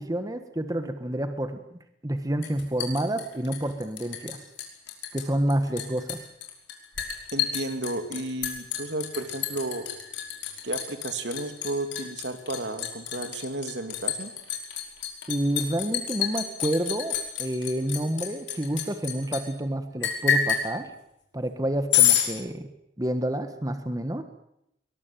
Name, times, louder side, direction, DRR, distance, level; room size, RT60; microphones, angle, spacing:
voice 1, 0.0-1.6 2.0-4.4 5.1-6.3 15.3-20.9 21.3-22.7 23.0-24.2, right 1 dB, 20° right, 8 dB, 1.4 m, -29 dB
Liquid, 2.4-4.3 4.6-5.2 5.5-19.4 20.0-20.6 21.9-22.3, left 9 dB, 80° left, 5.6 m, -28 dB
voice 2, 7.3-9.9 10.6-14.3, right 2 dB, 70° right, 8 dB, 2.8 m, -33 dB
23.0 x 20.0 x 9.2 m, 0.79 s
head